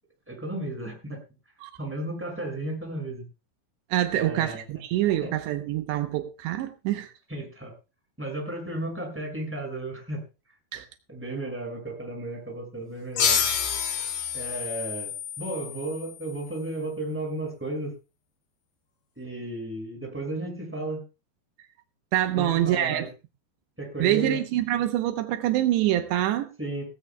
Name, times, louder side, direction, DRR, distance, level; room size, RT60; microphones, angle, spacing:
voice 1, 0.3-1.2 1.8-3.2 4.1-4.6 5.2-5.3 7.3-7.7 8.2-10.2 11.1-13.4 14.3-17.9 19.2-21.0 22.4-23.1 23.8-24.4 26.6-26.9, right 1 dB, 5° right, 5.6 m, -34 dB
voice 2, 3.9-7.1 10.7-10.9 22.1-23.0 24.0-26.5, right 13 dB, 80° right, 3.0 m, -25 dB
sound 1, 13.2-16.4, left 6 dB, 65° left, 4.2 m, -28 dB
18.0 x 16.0 x 2.3 m
omnidirectional pair, 5.0 m